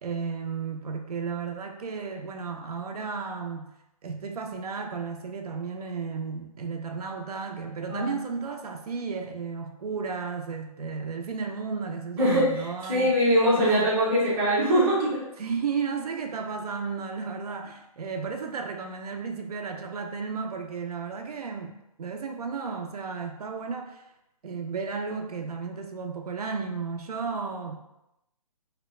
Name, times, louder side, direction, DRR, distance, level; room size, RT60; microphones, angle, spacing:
voice 1, 0.0-3.7 4.0-13.2 13.6-13.9 15.4-24.0 24.4-27.7, right 5 dB, 80° right, 4 dB, 0.5 m, -33 dB
voice 2, 12.2-15.2, equal, 10° right, -10 dB, 0.7 m, -22 dB
2.8 x 2.1 x 4.0 m, 0.87 s
hypercardioid pair, 170°, 19 cm